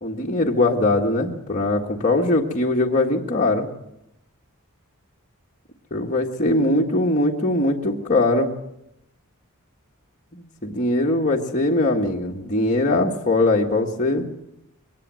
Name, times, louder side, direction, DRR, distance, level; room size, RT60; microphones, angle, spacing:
voice 1, 0.0-3.7 5.9-8.5 10.3-14.3, left 2 dB, 35° left, -2 dB, 1.7 m, -21 dB
23.0 x 19.0 x 7.7 m, 0.84 s
head